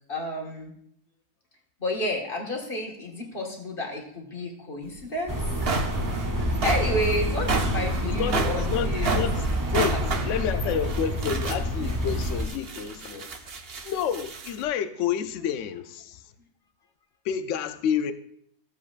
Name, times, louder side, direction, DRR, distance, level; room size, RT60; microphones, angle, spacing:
voice 1, 0.1-0.7 1.8-5.6 6.0-6.2 6.6-9.2 9.9-10.0 10.5-10.8, left 1 dB, 35° left, 1.7 m, -31 dB
sound 1, 4.9-5.0 5.4-14.6, right 4 dB, 45° right, 0.9 m, -32 dB
sound 2, 5.3-12.5, equal, 15° right, 0.7 m, -28 dB
voice 2, 8.0-9.4 9.7-13.3 13.8-16.2 17.2-18.1, left 8 dB, 60° left, 0.9 m, -29 dB
15.5 x 7.4 x 2.5 m
omnidirectional pair, 1.6 m